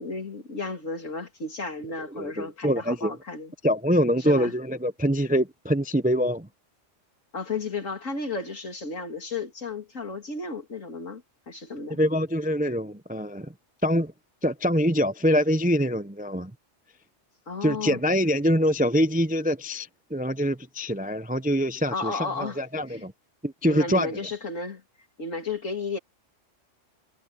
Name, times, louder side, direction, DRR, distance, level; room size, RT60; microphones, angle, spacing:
voice 1, 0.0-3.5 4.3-4.5 7.3-12.0 17.5-18.0 21.9-22.6 22.9-23.0 23.7-24.8 25.2-26.0, left 3 dB, 80° left, 3.3 m, -33 dB
voice 2, 2.1-3.2 3.6-6.5 11.9-13.5 13.8-14.1 14.4-16.5 17.6-23.1 23.4-24.2, equal, 15° right, 0.3 m, -24 dB
omnidirectional pair, 1.3 m